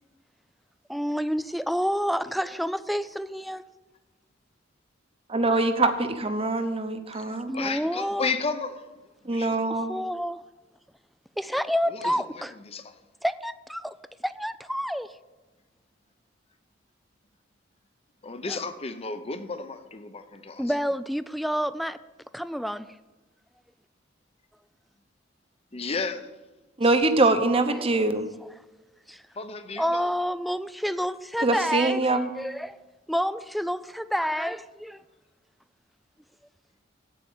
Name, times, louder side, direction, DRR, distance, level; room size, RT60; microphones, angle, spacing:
voice 1, 0.9-3.6 7.5-8.3 9.7-10.4 11.4-12.5 13.2-13.9 14.2-15.1 18.5-18.6 20.6-22.0 22.3-22.9 27.8-27.9 29.1-29.2 29.8-32.8 33.1-35.0, equal, ahead, 0.3 m, -29 dB
voice 2, 5.3-7.5 9.2-9.9 26.8-28.3 31.4-32.3, right 2 dB, 30° right, 0.9 m, -23 dB
voice 3, 7.1-8.8 9.2-9.7 11.8-12.9 18.2-20.7 25.7-26.3 29.4-30.1, left 4 dB, 30° left, 0.8 m, -33 dB
8.9 x 7.8 x 7.2 m
head